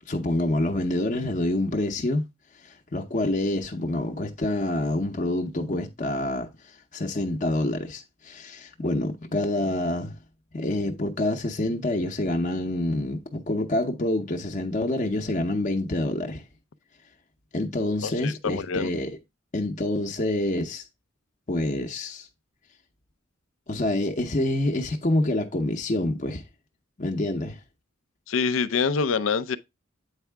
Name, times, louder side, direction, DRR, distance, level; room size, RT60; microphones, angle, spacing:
voice 1, 0.1-2.2 2.6-6.5 6.9-10.1 10.5-16.4 17.5-19.2 19.5-20.8 21.5-22.3 23.7-26.4 27.0-27.6, left 1 dB, 35° left, 0.8 m, -27 dB
voice 2, 18.0-18.9 28.3-29.6, left 5 dB, 70° left, 0.5 m, -26 dB
8.2 x 4.6 x 3.4 m
head